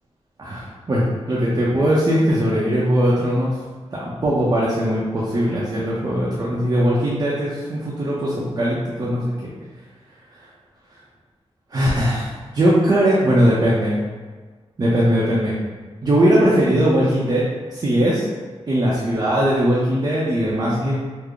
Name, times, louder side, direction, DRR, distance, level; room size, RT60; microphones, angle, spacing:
voice 1, 0.4-3.5 3.9-9.5 10.3-10.4 11.7-14.0 14.8-15.5 16.0-18.3 18.7-21.0, equal, 35° right, -6 dB, 0.5 m, -20 dB
3.4 x 2.0 x 3.6 m, 1.4 s
wide cardioid pair, 120°, 11 cm